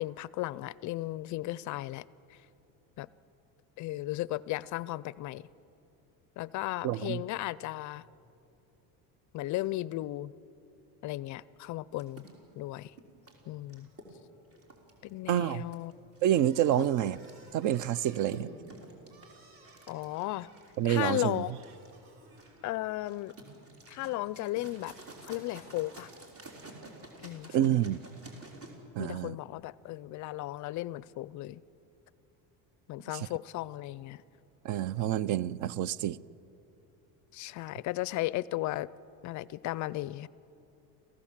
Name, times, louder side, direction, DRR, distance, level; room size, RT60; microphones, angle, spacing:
voice 1, 0.0-2.5 3.0-3.1 3.8-5.5 6.4-8.0 9.3-10.3 11.0-12.3 12.6-12.9 13.5-13.9 15.0-15.9 16.8-16.9 19.9-20.5 20.8-21.5 22.6-23.4 23.9-25.0 25.2-26.1 27.2-27.7 29.0-31.6 32.9-34.2 37.3-38.9 39.2-40.3, left 17 dB, 50° left, 0.4 m, -35 dB
voice 2, 6.8-7.2 15.3-15.6 16.2-17.2 17.5-18.5 20.8-21.4 27.5-28.0 29.0-29.4 34.6-36.2, right 11 dB, 50° right, 0.5 m, -28 dB
sound 1, 12.0-28.7, right 2 dB, 35° right, 3.9 m, -51 dB
sound 2, 16.3-22.9, right 3 dB, 65° right, 4.9 m, -59 dB
28.5 x 15.0 x 7.3 m
cardioid pair, 135°, 39 cm